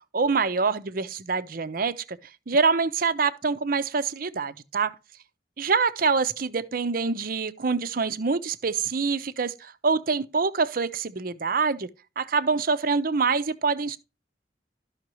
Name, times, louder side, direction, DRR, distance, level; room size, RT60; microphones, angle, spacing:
voice 1, 0.1-2.2 2.5-4.9 5.6-11.9 12.2-14.0, right 4 dB, 55° right, 0.7 m, -25 dB
13.0 x 5.8 x 3.0 m
head